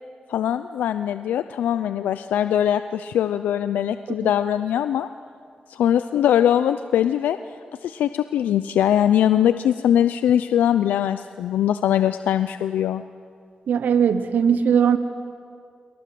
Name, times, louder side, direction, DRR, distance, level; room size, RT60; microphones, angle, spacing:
voice 1, 0.3-5.1 5.7-7.4 7.8-13.0, left 10 dB, 90° left, 11 dB, 0.6 m, -21 dB
voice 2, 13.7-15.0, right 7 dB, 80° right, 11 dB, 1.0 m, -19 dB
27.0 x 23.0 x 7.7 m, 2.3 s
supercardioid pair, 45°, 3 cm